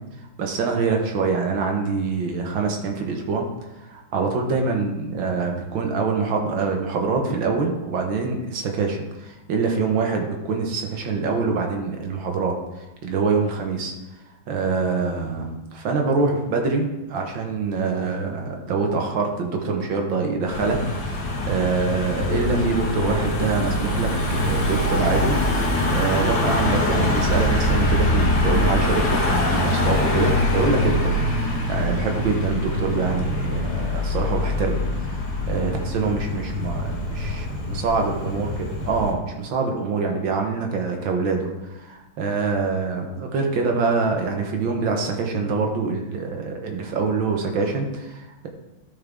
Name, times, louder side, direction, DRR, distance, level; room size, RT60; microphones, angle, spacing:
voice 1, 0.4-3.4 3.8-13.9 14.5-25.4 25.9-38.5 38.9-48.5, right 4 dB, 85° right, 2 dB, 2.0 m, -25 dB
Car passing by / Engine, 20.5-39.1, left 1 dB, 70° left, 2.3 m, -23 dB
13.0 x 5.4 x 3.6 m, 1.0 s
omnidirectional pair, 2.1 m